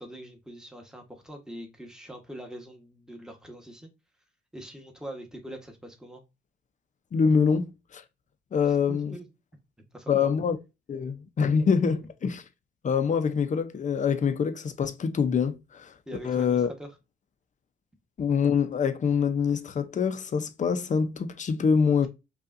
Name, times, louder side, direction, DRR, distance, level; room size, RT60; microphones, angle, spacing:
voice 1, 0.0-3.9 4.5-6.2 8.7-9.2 9.9-10.3 16.1-16.9, right 1 dB, 5° right, 1.1 m, -43 dB
voice 2, 7.1-8.0 8.5-9.2 10.1-10.6 10.9-12.4 12.8-15.9 16.2-16.7 18.2-22.1, left 6 dB, 40° left, 0.6 m, -25 dB
5.4 x 2.5 x 2.5 m
cardioid pair, 90°, 20 cm